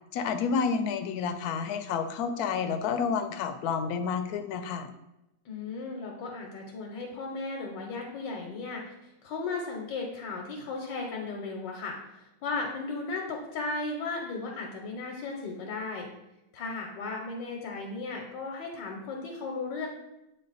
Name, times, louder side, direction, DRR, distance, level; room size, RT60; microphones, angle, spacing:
voice 1, 0.1-4.9, left 6 dB, 70° left, 8 dB, 1.0 m, -30 dB
voice 2, 5.4-16.1 16.5-19.9, left 3 dB, 90° left, 0 dB, 1.5 m, -36 dB
7.6 x 3.3 x 3.9 m, 0.90 s
omnidirectional pair, 1.9 m